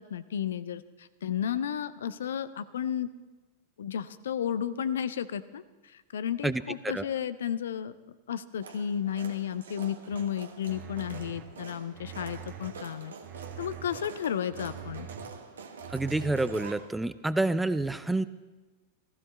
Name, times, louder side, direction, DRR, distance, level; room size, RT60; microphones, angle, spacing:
voice 1, 0.0-3.1 3.8-5.6 5.9-7.9 8.3-13.1 13.6-15.1, left 9 dB, 65° left, 14 dB, 0.6 m, -33 dB
voice 2, 6.4-7.1 15.9-18.2, right 2 dB, 5° right, 14 dB, 0.4 m, -28 dB
sound 1, 8.6-16.8, right 5 dB, 65° right, 1.3 m, -46 dB
sound 2, 10.1-10.2 10.7-11.4 11.9-12.7 13.2-14.0 14.5-15.3 15.8-16.6, right 10 dB, 30° right, 1.5 m, -44 dB
15.0 x 15.0 x 4.1 m, 1.2 s
figure-of-eight pair, 90°, 0 cm